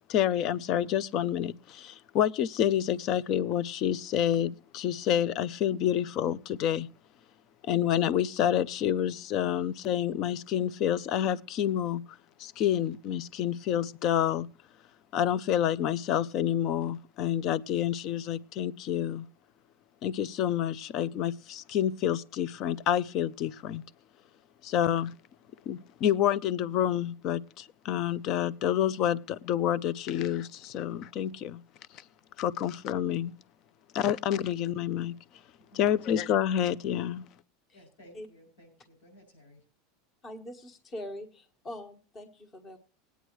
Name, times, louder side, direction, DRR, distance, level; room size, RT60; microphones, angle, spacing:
voice 1, 0.1-6.9 7.7-12.0 12.4-14.5 15.1-19.3 20.0-23.8 24.6-25.1 25.7-31.6 32.4-33.3 33.9-35.1 35.7-37.2, left 10 dB, 40° left, 0.5 m, -28 dB
voice 2, 35.6-36.1 37.7-39.6, equal, 85° left, 6.9 m, -56 dB
voice 3, 40.2-42.8, left 1 dB, 25° left, 1.5 m, -42 dB
20.0 x 9.2 x 3.1 m
supercardioid pair, 155°, 0 cm